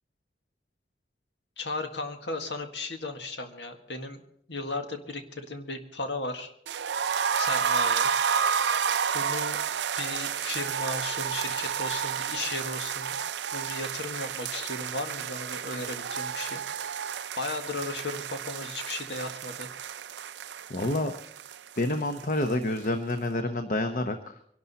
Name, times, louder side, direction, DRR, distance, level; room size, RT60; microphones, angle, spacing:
voice 1, 1.6-4.2 4.5-6.5 7.4-8.1 9.1-9.6 10.0-13.2 13.5-16.6 17.4-19.7, left 2 dB, 85° left, 5 dB, 1.8 m, -35 dB
sound 1, 6.7-22.5 22.8-22.9 23.2-23.3, right 7 dB, 80° right, 0.5 m, -31 dB
voice 2, 20.7-21.1 21.8-24.4, left 1 dB, 50° left, 7 dB, 0.9 m, -28 dB
24.0 x 12.0 x 4.2 m, 0.71 s
head